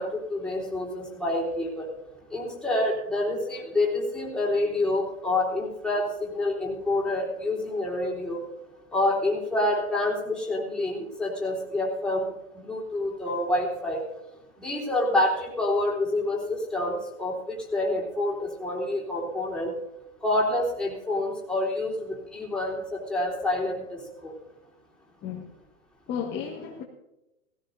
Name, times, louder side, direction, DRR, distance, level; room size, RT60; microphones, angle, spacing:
voice 1, 0.0-1.9 2.3-8.4 8.9-14.0 14.6-19.7 20.2-24.3, left 1 dB, ahead, -4 dB, 3.7 m, -27 dB
voice 2, 26.1-26.8, left 7 dB, 25° left, -2 dB, 1.7 m, -33 dB
16.5 x 16.5 x 2.7 m, 0.91 s
hypercardioid pair, 125°, 41 cm